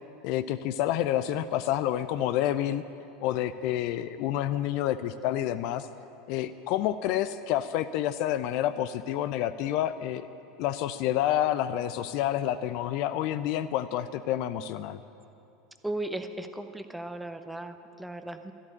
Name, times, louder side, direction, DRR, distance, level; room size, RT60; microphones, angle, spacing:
voice 1, 0.2-2.8 3.2-5.9 6.3-10.3 10.6-15.0, left 12 dB, 50° left, 13 dB, 0.4 m, -28 dB
voice 2, 15.8-18.5, right 1 dB, 5° right, 8 dB, 0.8 m, -36 dB
13.0 x 8.6 x 9.9 m, 2.7 s
figure-of-eight pair, 80°, 0 cm